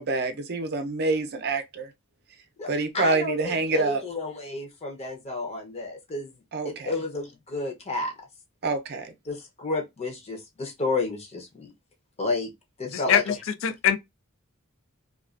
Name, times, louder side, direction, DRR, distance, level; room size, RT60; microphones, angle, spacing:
voice 1, 0.0-1.9 2.7-4.0 6.5-6.9 8.6-9.1, right 3 dB, 50° right, 0.5 m, -27 dB
voice 2, 2.9-6.3 6.6-8.1 9.3-11.7 12.2-12.5 12.8-13.4, left 3 dB, 30° left, 0.7 m, -31 dB
voice 3, 12.9-13.3 13.6-14.0, left 8 dB, 70° left, 0.4 m, -22 dB
2.3 x 2.3 x 2.3 m
head